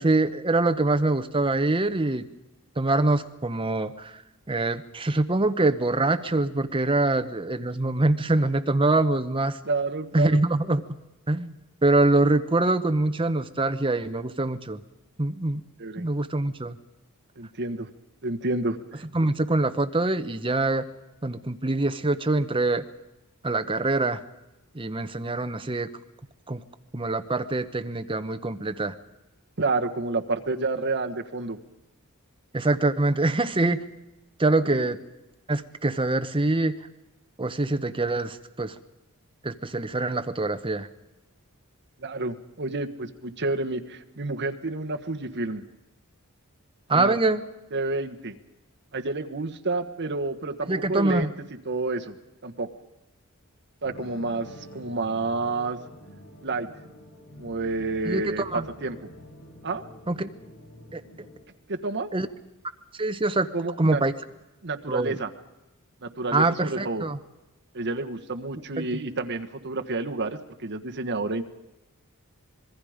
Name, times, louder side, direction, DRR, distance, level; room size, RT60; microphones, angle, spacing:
voice 1, 0.0-2.3 2.8-4.2 4.5-9.6 10.1-10.8 11.3-11.5 11.8-14.8 15.2-15.6 16.0-16.8 19.1-20.9 21.2-22.8 23.4-24.2 24.7-25.9 26.5-26.6 26.9-28.9 32.5-33.8 34.4-35.0 35.5-36.8 37.4-38.7 39.4-40.9 46.9-47.4 50.7-51.3 58.0-58.7 60.1-60.3 60.9-61.0 62.1-62.3 63.0-63.5 63.8-64.1 64.9-65.2 66.3-67.2 68.8-69.0, right 2 dB, 25° right, 9 dB, 1.0 m, -24 dB
voice 2, 9.6-10.4 15.8-16.1 17.4-17.9 18.2-19.0 29.6-31.6 34.6-34.8 42.0-45.7 46.9-47.1 47.7-48.4 48.9-51.3 51.6-52.1 52.4-52.7 53.8-55.8 56.4-56.7 57.4-59.1 59.6-59.8 61.7-62.1 63.5-64.0 64.6-65.3 66.0-67.0 67.7-71.4, right 3 dB, 50° right, 5 dB, 1.4 m, -29 dB
sound 1, 53.8-61.4, equal, 55° left, 6.2 m, -46 dB
26.0 x 21.0 x 5.1 m, 0.97 s
head